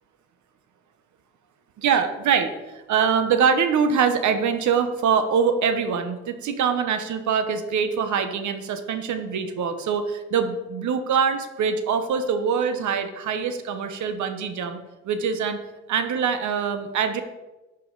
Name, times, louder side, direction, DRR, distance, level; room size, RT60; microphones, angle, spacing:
voice 1, 1.8-14.8 15.0-15.6 15.9-17.2, right 6 dB, 70° right, 8 dB, 1.0 m, -24 dB
11.0 x 5.6 x 3.9 m, 1.1 s
cardioid pair, 90°, 30 cm